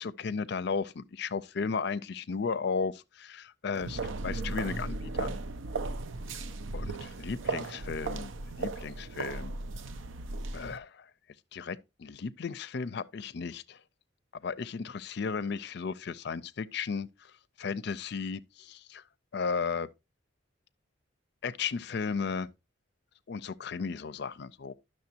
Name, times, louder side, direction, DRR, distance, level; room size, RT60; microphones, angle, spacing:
voice 1, 0.0-5.3 6.7-8.3 8.6-9.5 10.5-11.1 11.5-13.8 14.3-17.3 17.6-19.0 19.3-19.9 21.4-22.5 23.3-24.7, left 5 dB, 55° left, 0.5 m, -35 dB
sound 1, 3.8-10.8, right 3 dB, 80° right, 0.5 m, -36 dB
10.5 x 6.4 x 2.8 m
head